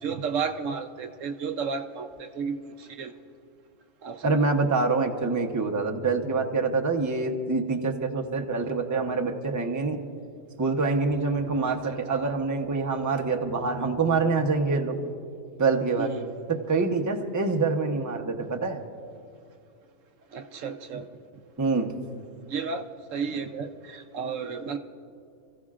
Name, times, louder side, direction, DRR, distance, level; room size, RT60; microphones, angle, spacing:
voice 1, 0.0-3.1 4.0-4.4 11.6-12.0 16.0-16.3 18.4-18.5 20.3-21.1 22.5-24.8, right 5 dB, 70° right, 6 dB, 1.1 m, -33 dB
voice 2, 4.2-10.0 10.6-15.0 15.6-16.1 16.5-18.8 21.6-21.9, right 4 dB, 15° right, 3 dB, 0.7 m, -26 dB
29.0 x 15.0 x 2.5 m, 2.5 s
omnidirectional pair, 1.5 m